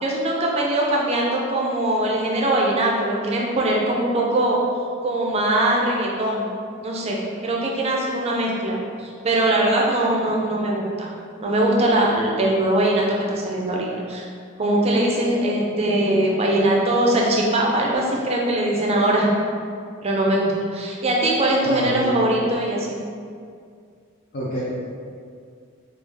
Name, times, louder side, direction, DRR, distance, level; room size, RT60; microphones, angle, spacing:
voice 1, 0.0-4.6 5.0-6.5 6.8-11.1 11.4-14.3 14.6-19.3 20.0-23.0, right 1 dB, 30° right, -2 dB, 0.5 m, -21 dB
voice 2, 21.6-22.1 24.3-24.6, equal, 50° left, -8 dB, 0.6 m, -27 dB
3.2 x 2.3 x 3.4 m, 2.2 s
head